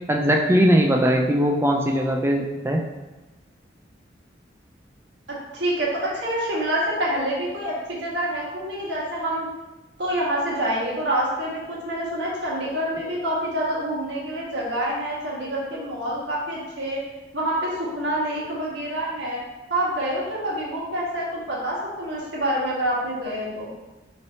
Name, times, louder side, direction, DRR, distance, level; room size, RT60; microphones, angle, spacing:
voice 1, 0.1-2.8, equal, 15° right, 1 dB, 0.3 m, -20 dB
voice 2, 5.3-9.5 10.0-17.0 17.3-19.4 19.7-23.7, right 1 dB, 70° right, -5 dB, 1.2 m, -27 dB
4.2 x 3.1 x 2.7 m, 1.1 s
head